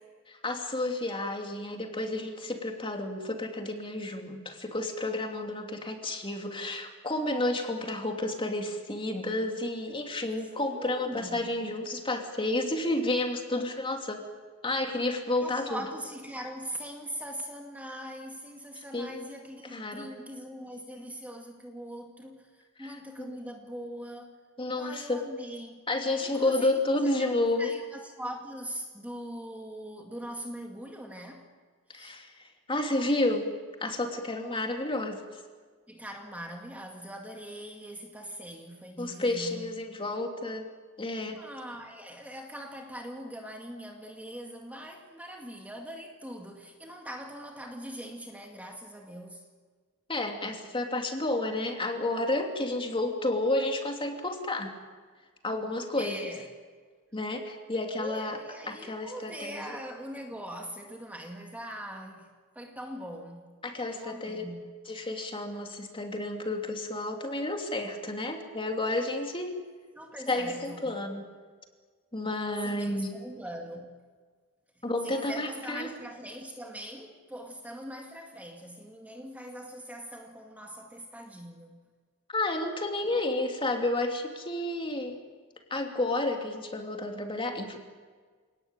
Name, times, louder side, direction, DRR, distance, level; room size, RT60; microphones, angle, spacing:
voice 1, 0.3-14.2 14.6-15.8 18.9-19.1 19.7-20.1 22.8-23.4 24.6-25.2 25.9-27.7 31.9-33.5 33.8-35.2 39.0-40.6 41.0-41.4 50.1-54.7 55.4-56.2 57.1-58.4 58.7-59.7 63.6-64.4 64.9-69.5 70.3-71.2 72.1-73.1 74.8-75.9 82.3-85.2 85.7-87.8, left 2 dB, 25° left, 3 dB, 3.0 m, -31 dB
voice 2, 10.6-11.5 15.4-24.4 24.8-25.8 26.2-31.5 31.9-32.2 35.9-39.7 41.3-49.4 56.0-56.4 58.0-63.5 63.9-64.7 69.9-71.0 72.6-74.0 74.8-81.8, equal, 5° right, 2 dB, 2.1 m, -42 dB
28.0 x 18.5 x 9.1 m, 1.5 s
head